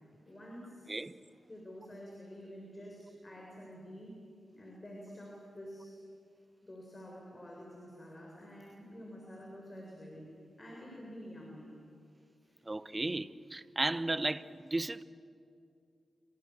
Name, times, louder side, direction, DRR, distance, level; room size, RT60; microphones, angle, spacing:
voice 1, 0.3-1.0 1.5-4.2 4.5-6.0 6.6-10.3 10.6-11.7 12.5-12.6, equal, 30° left, 7.1 m, -49 dB
voice 2, 12.7-15.0, right 2 dB, 25° right, 1.1 m, -34 dB
29.5 x 26.0 x 7.7 m
cardioid pair, 50°, 0 cm